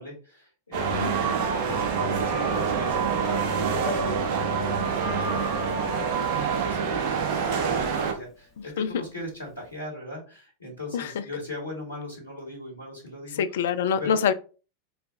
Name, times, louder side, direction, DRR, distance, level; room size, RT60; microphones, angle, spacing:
voice 1, 0.0-13.6 14.0-14.2, left 1 dB, 75° left, 1.6 m, -39 dB
sound 1, 0.7-8.1, right 6 dB, 40° right, 1.0 m, -26 dB
Piano, 3.8-9.7, left 2 dB, 30° left, 0.7 m, -42 dB
voice 2, 13.4-14.3, left 7 dB, 60° left, 0.4 m, -25 dB
4.7 x 2.3 x 3.7 m
figure-of-eight pair, 90°, 0 cm